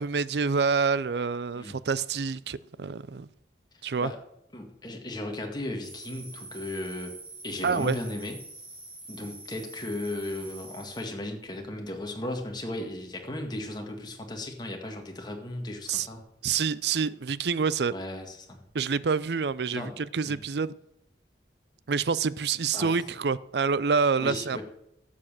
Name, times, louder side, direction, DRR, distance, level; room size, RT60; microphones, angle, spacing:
voice 1, 0.0-3.3 3.8-4.1 7.6-8.0 15.9-16.1 16.4-17.9 18.7-20.7 21.9-24.6, right 5 dB, 65° right, 0.5 m, -27 dB
voice 2, 4.5-7.1 7.4-8.4 9.1-16.2 17.9-18.6 19.7-20.0 20.2-20.4 22.7-22.9 24.2-24.6, left 1 dB, 25° left, 2.0 m, -36 dB
sound 1, 5.8-11.0, right 2 dB, 35° right, 3.7 m, -45 dB
12.0 x 7.5 x 7.4 m
head